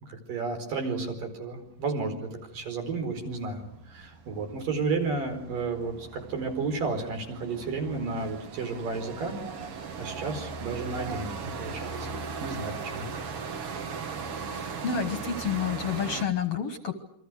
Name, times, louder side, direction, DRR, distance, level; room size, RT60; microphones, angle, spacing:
voice 1, 0.0-9.4 10.0-13.1, right 4 dB, 70° right, 5 dB, 6.2 m, -32 dB
sound 1, 2.0-2.1 2.4-16.3, right 5 dB, 50° right, 2.3 m, -38 dB
voice 2, 14.5-16.9, left 7 dB, 55° left, 9 dB, 2.0 m, -29 dB
28.0 x 25.0 x 6.4 m, 0.75 s
omnidirectional pair, 4.0 m